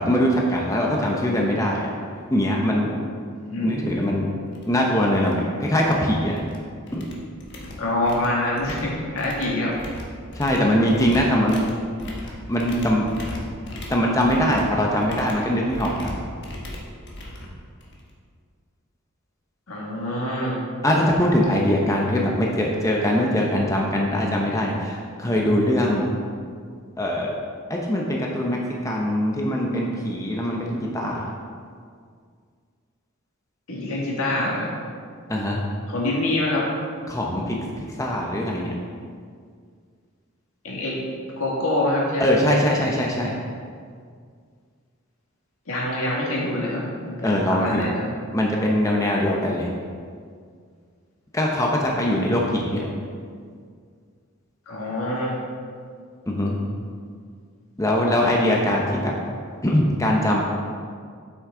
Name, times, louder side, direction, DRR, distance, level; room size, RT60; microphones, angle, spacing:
voice 1, 0.0-1.9 2.3-3.0 3.6-4.3 4.7-6.4 6.9-7.1 10.3-11.7 12.5-13.1 13.9-16.2 20.8-26.1 27.0-27.3 27.7-31.2 35.3-35.6 37.1-38.7 42.2-43.3 47.2-47.8 48.3-49.7 51.3-52.9 56.3-56.6 57.8-59.1 59.6-60.4, left 1 dB, 15° left, -1 dB, 0.7 m, -22 dB
voice 2, 3.4-4.0 7.8-9.7 19.7-20.6 33.7-34.8 35.9-36.7 40.6-41.0 41.4-42.4 45.7-48.1 54.7-55.4, left 1 dB, 85° left, -4 dB, 1.9 m, -25 dB
sound 1, 4.0-4.1 4.5-4.7 5.0-5.3 5.7-6.6 6.9-18.1, left 1 dB, 55° left, 1.2 m, -38 dB
8.1 x 6.3 x 3.8 m, 2.1 s
head